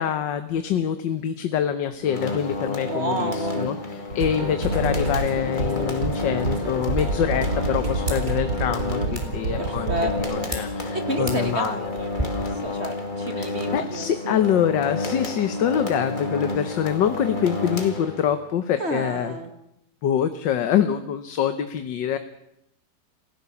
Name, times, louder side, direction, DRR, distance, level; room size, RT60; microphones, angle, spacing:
voice 1, 0.0-12.0 13.3-19.4 20.0-22.2, left 9 dB, 75° left, 10 dB, 1.7 m, -25 dB
sound 1, 2.0-18.5, left 2 dB, 25° left, 2.5 m, -30 dB
voice 2, 2.7-3.7 9.6-10.6 10.9-14.4 18.8-19.5, right 2 dB, 35° right, 6 dB, 2.2 m, -31 dB
sound 2, 4.1-10.2, right 3 dB, 65° right, 3.8 m, -28 dB
sound 3, 6.7-12.2, right 1 dB, 15° right, 3.8 m, -37 dB
28.5 x 16.0 x 7.1 m, 0.83 s
omnidirectional pair, 2.0 m